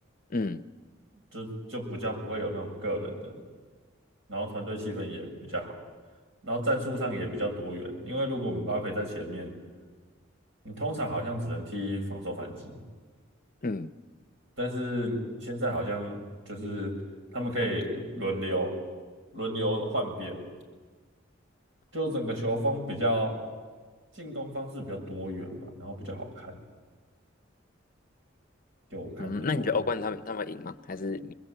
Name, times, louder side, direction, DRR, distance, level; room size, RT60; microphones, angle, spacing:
voice 1, 0.3-0.6 13.6-13.9 29.2-31.4, left 3 dB, 45° left, 10 dB, 0.8 m, -31 dB
voice 2, 1.3-3.4 4.3-5.8 6.4-9.5 10.6-12.8 14.6-16.2 16.5-16.9 17.3-18.7 19.3-20.4 21.9-23.4 24.2-26.6 28.9-29.8, right 1 dB, 75° right, 2 dB, 7.2 m, -32 dB
26.5 x 21.5 x 9.1 m, 1.4 s
head